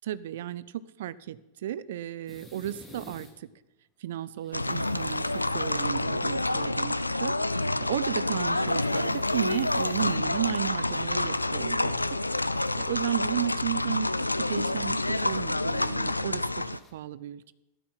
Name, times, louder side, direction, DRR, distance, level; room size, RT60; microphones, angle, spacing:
voice 1, 0.0-3.5 4.0-12.2 12.8-14.1 14.4-16.6 16.9-17.5, right 12 dB, 55° right, 17 dB, 0.7 m, -34 dB
sound 1, 2.3-3.3 4.2-6.2 8.2-10.6 11.2-11.3 12.3-12.4 12.6-12.7 16.0-16.9, left 1 dB, 5° left, 2.6 m, -53 dB
sound 2, 4.5-16.8, left 2 dB, 85° left, 0.5 m, -28 dB
14.5 x 12.5 x 6.0 m, 0.95 s
figure-of-eight pair, 90°, 0 cm